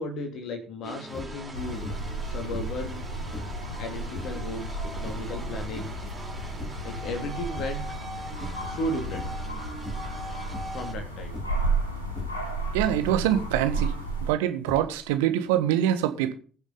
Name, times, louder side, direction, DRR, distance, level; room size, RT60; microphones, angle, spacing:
voice 1, 0.0-1.9 2.2-3.0 3.8-6.0 6.8-7.9 8.6-9.2 10.7-11.3, left 1 dB, 55° left, 2.7 m, -35 dB
sound 1, 0.8-11.0, right 2 dB, 20° right, 4.0 m, -41 dB
sound 2, 1.1-1.5 1.8-2.2 2.5-3.7 4.1-4.4 5.0-6.1 6.5-7.0 7.4-8.1 8.4-8.8 9.1-9.5 9.8-10.2 10.5-10.9 11.3-11.7 12.1-12.4 13.0-14.1 14.6-15.2, left 2 dB, 30° left, 5.0 m, -40 dB
sound 3, 1.5-14.3, right 2 dB, 90° left, 3.0 m, -33 dB
voice 2, 12.7-13.9 14.2-16.3, right 11 dB, 70° right, 1.5 m, -24 dB
20.5 x 7.0 x 4.0 m
figure-of-eight pair, 50°, 0 cm